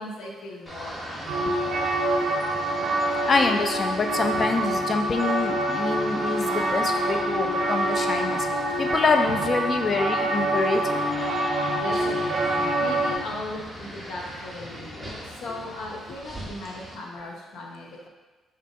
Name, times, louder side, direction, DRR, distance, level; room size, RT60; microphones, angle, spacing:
voice 1, 0.0-1.7 11.7-15.1 15.4-18.1, left 2 dB, 80° left, -1 dB, 0.7 m, -38 dB
sound 1, 0.7-17.0, equal, ahead, 0.9 m, -39 dB
sound 2, 1.3-13.2, right 1 dB, 80° right, 0.5 m, -26 dB
voice 2, 3.2-8.4 8.8-10.8, left 4 dB, 40° left, 5 dB, 0.4 m, -25 dB
3.5 x 2.6 x 4.2 m, 1.2 s
cardioid pair, 90°, 0 cm